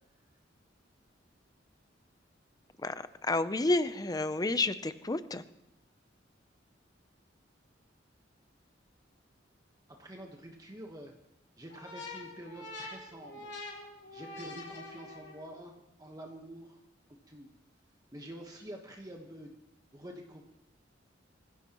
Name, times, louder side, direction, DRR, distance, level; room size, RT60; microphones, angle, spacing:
voice 1, 3.2-5.4, left 2 dB, 20° left, 13 dB, 0.6 m, -30 dB
voice 2, 10.0-11.1 11.6-13.6 14.1-15.7 16.0-16.8 17.3-17.5 18.1-19.6 19.9-20.4, right 1 dB, 20° right, 1 dB, 1.3 m, -47 dB
sound 1, 11.7-15.6, left 2 dB, 65° left, 3.6 m, -45 dB
25.0 x 15.5 x 3.0 m, 0.86 s
head